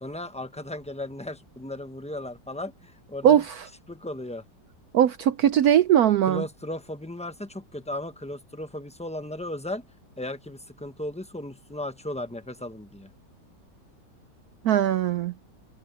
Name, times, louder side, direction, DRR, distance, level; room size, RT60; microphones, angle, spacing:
voice 1, 0.0-3.4 3.9-4.4 6.3-9.8 10.2-13.1, left 1 dB, 5° left, 0.5 m, -36 dB
voice 2, 3.2-3.6 4.9-6.4 14.6-15.3, right 10 dB, 70° right, 1.0 m, -20 dB
omnidirectional pair, 1.9 m